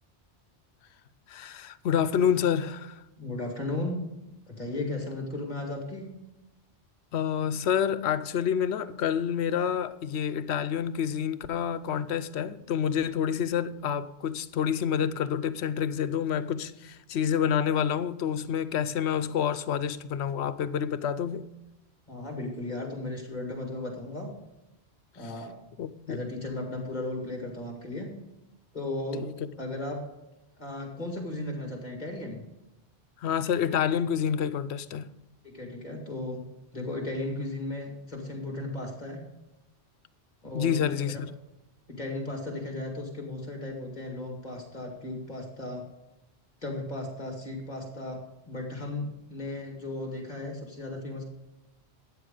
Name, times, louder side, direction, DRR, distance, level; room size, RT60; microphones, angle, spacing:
voice 1, 1.3-3.0 7.1-21.5 25.8-26.2 29.2-29.3 33.2-35.1 40.5-41.3, left 8 dB, 80° left, 0.9 m, -28 dB
voice 2, 3.2-6.2 22.1-24.3 25.1-25.5 26.1-28.2 28.7-29.3 29.6-30.0 30.6-32.4 35.4-36.4 36.7-39.2 40.4-40.8 41.9-45.8 46.6-51.2, left 2 dB, 40° left, 2.2 m, -35 dB
13.0 x 9.7 x 3.9 m
omnidirectional pair, 1.1 m